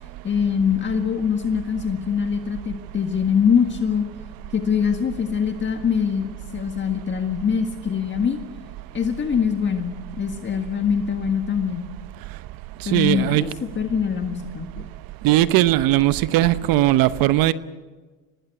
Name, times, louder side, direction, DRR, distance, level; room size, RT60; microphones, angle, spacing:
voice 1, 0.2-4.1 4.5-8.4 8.9-11.9 12.8-14.8, left 7 dB, 25° left, 5 dB, 1.7 m, -23 dB
voice 2, 12.8-13.4 15.2-17.5, right 15 dB, 55° right, 14 dB, 0.9 m, -18 dB
24.0 x 19.0 x 8.3 m, 1.3 s
supercardioid pair, 105°, 42 cm